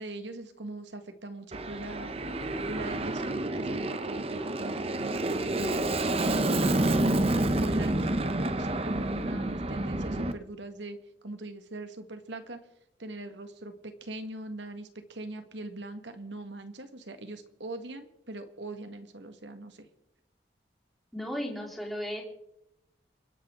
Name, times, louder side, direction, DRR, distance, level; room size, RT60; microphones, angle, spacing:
voice 1, 0.0-2.2 2.7-7.2 7.5-11.0 11.2-12.7 13.0-19.9, right 2 dB, 80° right, 8 dB, 1.8 m, -41 dB
Aircraft, 1.5-10.3, right 2 dB, 30° right, 0.8 m, -29 dB
voice 2, 21.1-22.2, equal, ahead, -3 dB, 3.9 m, -35 dB
29.5 x 10.5 x 3.8 m, 0.82 s
head